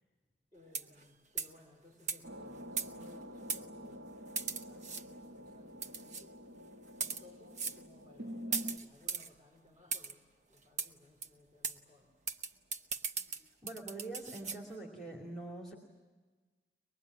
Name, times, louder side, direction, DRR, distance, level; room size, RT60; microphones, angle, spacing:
voice 1, 0.5-6.4 7.0-12.1, left 2 dB, 25° right, -3 dB, 4.6 m, -61 dB
sound 1, 0.7-1.0 1.4-1.6 2.1-2.2 2.8-3.1 3.5-3.6 4.4-5.0 5.8-6.2 6.9-7.2 7.6-7.8 8.5-9.3 9.9-10.1 10.8-10.9 11.2-11.3 11.6-11.8 12.3-14.6, right 5 dB, 40° right, 0.8 m, -38 dB
sound 2, 2.2-8.8, equal, 75° right, 1.6 m, -47 dB
voice 2, 13.6-15.7, right 2 dB, ahead, 0 dB, 2.5 m, -44 dB
23.5 x 21.0 x 9.4 m, 1.3 s
head